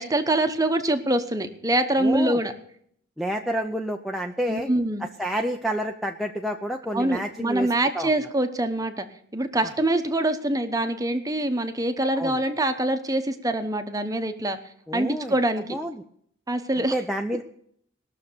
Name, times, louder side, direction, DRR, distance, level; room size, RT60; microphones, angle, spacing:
voice 1, 0.0-2.5 4.5-5.0 6.9-9.1 9.3-14.6 14.9-15.8 16.5-17.0, right 1 dB, 15° right, 8 dB, 1.0 m, -24 dB
voice 2, 2.0-2.4 3.2-4.7 5.2-7.7 7.9-8.1 12.2-12.4 14.9-15.3 15.7-16.0 16.8-17.4, equal, ahead, 1 dB, 0.5 m, -29 dB
19.5 x 6.7 x 6.8 m, 0.67 s
head